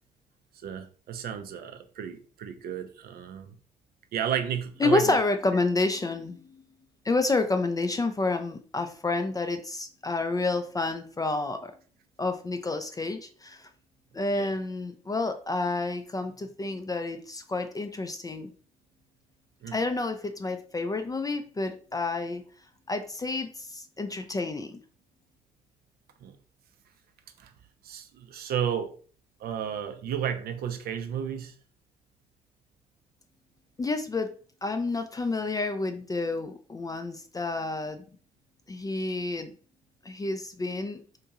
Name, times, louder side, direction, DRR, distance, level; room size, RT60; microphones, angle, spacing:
voice 1, 0.6-3.5 4.1-5.2 14.3-14.5 19.6-19.8 26.2-26.4 27.4-27.5 27.8-28.9 29.4-31.5, right 9 dB, 50° right, 0.4 m, -33 dB
voice 2, 4.8-6.6 7.0-11.7 12.2-13.7 14.1-18.5 19.7-22.4 22.9-24.8 33.8-38.0 38.7-39.5 40.0-41.0, left 3 dB, 20° left, 0.3 m, -29 dB
2.9 x 2.6 x 2.4 m
figure-of-eight pair, 45°, 21 cm